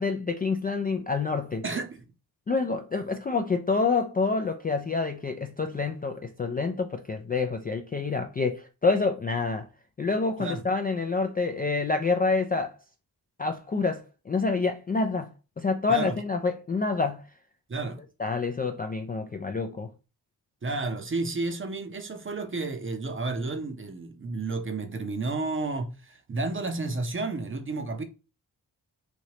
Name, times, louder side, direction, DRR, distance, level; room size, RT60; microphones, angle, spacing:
voice 1, 0.0-1.6 2.5-9.7 10.0-12.7 13.4-15.3 15.6-17.3 18.2-19.9, left 4 dB, 20° left, 0.4 m, -27 dB
voice 2, 1.6-2.0 10.4-10.7 15.9-16.1 17.7-18.0 20.6-28.0, right 3 dB, 25° right, 0.7 m, -31 dB
3.2 x 2.7 x 2.8 m
supercardioid pair, 40°, 46 cm